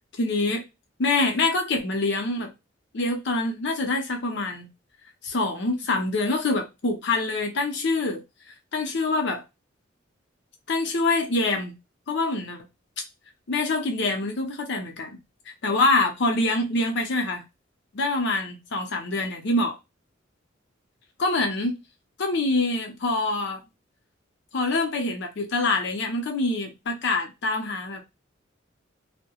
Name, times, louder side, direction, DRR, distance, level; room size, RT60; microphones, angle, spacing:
voice 1, 0.2-0.6 1.0-2.5 2.9-4.7 5.2-8.2 8.7-9.4 10.7-11.8 12.1-12.7 13.5-15.2 15.6-17.4 17.9-19.8 21.2-21.8 22.2-23.6 24.5-28.0, left 2 dB, 60° left, 0.6 m, -25 dB
2.7 x 2.1 x 2.8 m
head